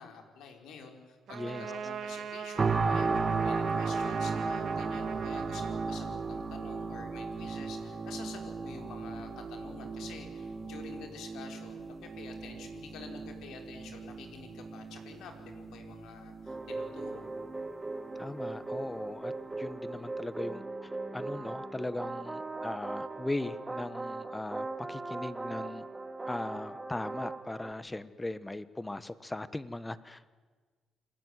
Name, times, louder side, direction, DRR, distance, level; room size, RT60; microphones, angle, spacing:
voice 1, 0.0-17.3, left 5 dB, 80° left, 4 dB, 4.8 m, -48 dB
voice 2, 1.3-1.7 18.1-19.3 19.6-25.8 26.3-30.3, left 2 dB, 15° left, 15 dB, 1.3 m, -39 dB
Trumpet, 1.3-6.5, right 8 dB, 65° right, 2.4 m, -41 dB
sound 1, 2.6-17.6 18.1-18.3, right 4 dB, 35° right, 2.0 m, -35 dB
sound 2, 16.5-27.7, right 2 dB, 15° right, 2.1 m, -39 dB
28.5 x 20.0 x 9.9 m, 1.5 s
cardioid pair, 90°, 0 cm